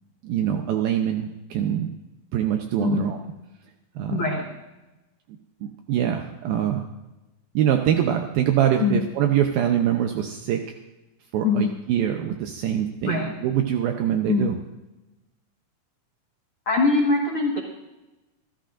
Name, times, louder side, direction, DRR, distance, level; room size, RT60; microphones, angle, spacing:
voice 1, 0.2-1.9 2.3-3.2 4.0-4.2 5.6-6.9 7.5-10.6 11.3-14.6, right 10 dB, 85° right, 4 dB, 2.1 m, -24 dB
voice 2, 4.1-4.4 8.8-9.0 11.4-11.7 13.0-13.3 14.3-14.5 16.6-17.6, left 4 dB, 65° left, -1 dB, 1.3 m, -22 dB
25.5 x 13.5 x 2.6 m, 1.0 s
omnidirectional pair, 5.2 m